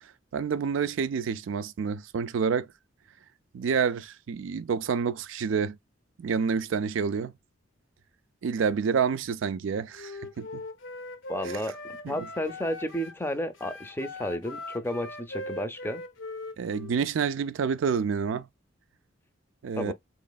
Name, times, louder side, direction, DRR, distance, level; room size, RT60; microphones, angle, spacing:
voice 1, 0.0-2.7 3.5-5.8 6.2-7.3 8.4-10.6 11.4-11.6 12.0-12.3 16.6-18.5 19.6-19.9, right 6 dB, 75° right, 0.4 m, -28 dB
Wind instrument woodwind instrument, 9.9-13.2 13.5-17.0, left 1 dB, 75° left, 0.7 m, -40 dB
voice 2, 11.3-11.8 12.1-16.0 19.8-19.9, left 1 dB, 10° left, 0.6 m, -32 dB
4.0 x 3.0 x 2.3 m
head